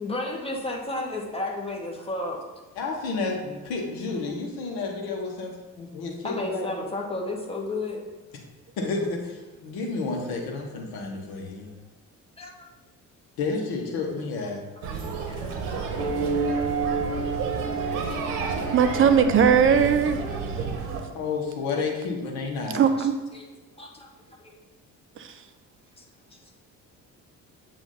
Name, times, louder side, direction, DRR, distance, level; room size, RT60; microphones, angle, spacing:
voice 1, 0.0-2.4 6.2-8.0 12.4-12.5 15.2-15.8 23.0-23.4 23.8-24.1 24.4-24.6 26.0-26.1, left 2 dB, 15° left, -1 dB, 1.2 m, -32 dB
voice 2, 2.8-6.7 8.8-11.7 13.4-14.6 21.1-22.9, left 4 dB, 55° left, 0 dB, 1.1 m, -31 dB
sound 1, 14.8-21.0, right 5 dB, 65° right, 0.9 m, -31 dB
sound 2, 16.0-20.9, right 4 dB, 85° right, 0.5 m, -30 dB
voice 3, 18.7-20.5 22.7-23.1 25.2-25.3, right 7 dB, 30° right, 8 dB, 0.5 m, -20 dB
7.0 x 2.7 x 5.5 m, 1.2 s
figure-of-eight pair, 50°, 45 cm